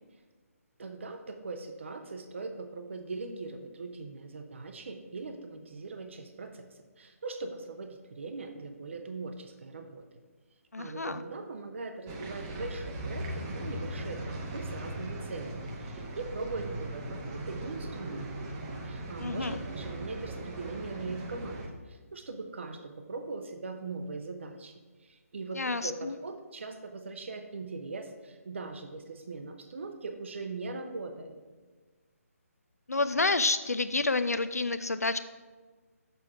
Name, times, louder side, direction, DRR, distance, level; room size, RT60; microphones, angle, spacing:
voice 1, 0.8-6.7 7.0-10.2 10.8-18.3 18.8-31.3, right 3 dB, 50° right, 6 dB, 0.6 m, -40 dB
voice 2, 10.7-11.2 19.2-19.6 25.5-26.2 32.9-35.2, left 3 dB, 80° left, 11 dB, 0.4 m, -29 dB
sound 1, 12.1-21.7, right 1 dB, 15° right, 0.7 m, -39 dB
6.8 x 4.7 x 5.5 m, 1.4 s
figure-of-eight pair, 145°, 8 cm